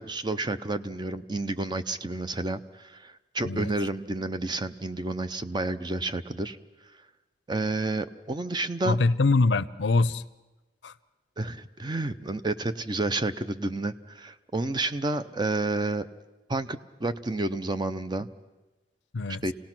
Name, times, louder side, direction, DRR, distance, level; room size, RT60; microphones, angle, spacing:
voice 1, 0.0-6.6 7.5-9.0 11.4-16.1 16.5-18.3 19.4-19.5, right 2 dB, 25° right, 11 dB, 0.6 m, -30 dB
voice 2, 8.8-10.2 10.8-10.9 19.1-19.4, left 3 dB, 85° left, 16 dB, 0.6 m, -23 dB
27.5 x 18.0 x 6.0 m, 1.1 s
head